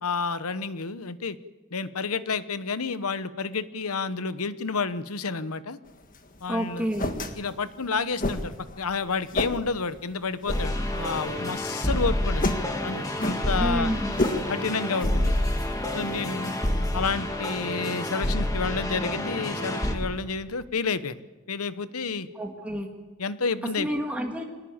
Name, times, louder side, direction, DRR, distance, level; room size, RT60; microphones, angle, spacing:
voice 1, 0.0-1.4 1.7-5.8 6.4-6.9 7.4-12.5 12.8-13.9 14.5-15.3 15.9-16.6 16.9-21.2 21.5-22.3 23.2-23.9, left 4 dB, 85° left, 13 dB, 1.1 m, -30 dB
sound 1, 5.9-16.6, left 1 dB, 40° left, 1.8 m, -34 dB
voice 2, 6.5-7.1 13.6-14.1 22.3-22.9 23.8-24.4, equal, 5° right, 1 dB, 2.0 m, -29 dB
sound 2, 10.5-19.9, left 1 dB, 15° left, 2.3 m, -28 dB
24.5 x 19.0 x 8.8 m, 1.3 s
head